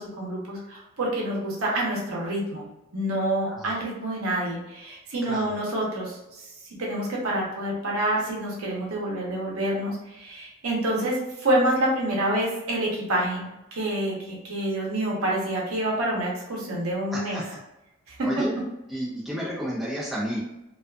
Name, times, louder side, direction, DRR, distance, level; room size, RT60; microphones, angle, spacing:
voice 1, 0.0-2.7 2.9-6.4 6.8-17.4 18.1-18.2, right 1 dB, 85° right, -3 dB, 0.8 m, -27 dB
voice 2, 17.1-17.6 18.2-18.5 18.9-20.4, equal, ahead, -8 dB, 0.7 m, -32 dB
2.4 x 2.4 x 2.2 m, 0.94 s
head